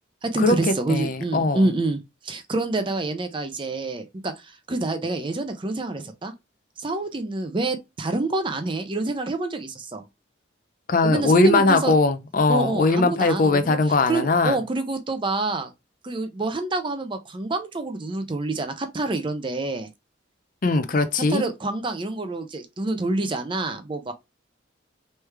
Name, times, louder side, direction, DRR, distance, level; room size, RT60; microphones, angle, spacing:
voice 1, 0.2-6.3 6.8-10.0 11.0-11.9 12.5-15.7 16.0-19.9 21.3-24.1, right 2 dB, 25° right, 0.5 m, -27 dB
voice 2, 0.9-1.7 10.9-14.6 20.6-21.4, left 3 dB, 45° left, 0.5 m, -20 dB
3.4 x 3.2 x 3.2 m
head